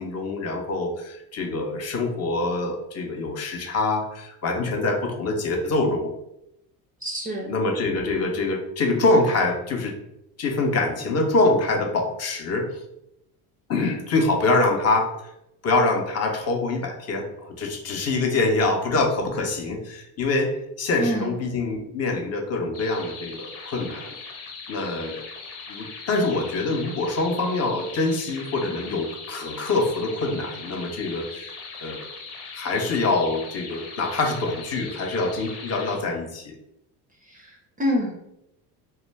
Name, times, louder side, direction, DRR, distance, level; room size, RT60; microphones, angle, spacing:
voice 1, 0.0-6.1 7.5-9.9 10.4-12.7 13.7-15.1 15.6-17.3 17.6-24.1 24.7-25.2 25.7-31.5 31.8-32.0 32.5-36.6, left 2 dB, 40° left, 3 dB, 0.6 m, -25 dB
voice 2, 7.0-7.5 21.0-21.4 37.2-38.2, equal, 20° right, -1 dB, 0.4 m, -27 dB
sound 1, 22.7-36.0, left 4 dB, 60° left, 0.9 m, -40 dB
2.2 x 2.1 x 3.2 m, 0.82 s
supercardioid pair, 95°, 42 cm